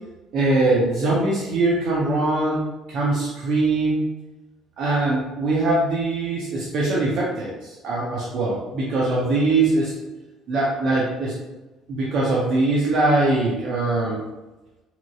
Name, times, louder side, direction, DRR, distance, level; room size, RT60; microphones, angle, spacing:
voice 1, 0.3-4.0 4.8-7.5 7.8-9.9 10.5-11.3 11.9-14.2, right 2 dB, 60° right, -5 dB, 0.6 m, -22 dB
2.9 x 2.5 x 2.3 m, 1.1 s
hypercardioid pair, 60°, 0 cm